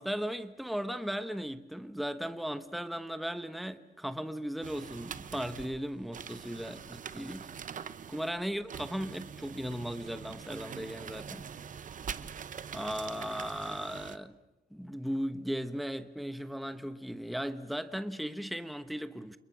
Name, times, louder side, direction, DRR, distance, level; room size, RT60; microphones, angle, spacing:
voice 1, 0.0-7.5 8.1-11.4 12.7-14.4 14.7-19.4, equal, ahead, 1.0 m, -37 dB
sound 1, 4.6-14.2, right 7 dB, 45° right, 0.9 m, -44 dB
29.5 x 29.5 x 6.2 m
wide cardioid pair, 160°, 18 cm